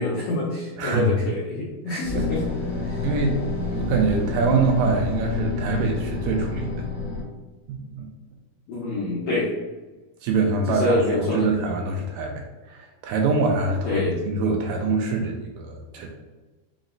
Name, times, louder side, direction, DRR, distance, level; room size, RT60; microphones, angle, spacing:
voice 1, 0.0-2.4 2.8-3.0 8.7-9.5 10.7-11.5 13.8-14.1, left 1 dB, 85° left, -6 dB, 1.4 m, -26 dB
voice 2, 0.8-1.1 1.9-2.3 3.0-6.8 7.7-8.1 10.2-12.3 12.7-16.1, right 3 dB, 80° right, 1 dB, 2.0 m, -24 dB
sound 1, 2.0-7.2, left 3 dB, 60° left, 1.6 m, -28 dB
5.8 x 2.1 x 3.8 m, 1.2 s
omnidirectional pair, 4.2 m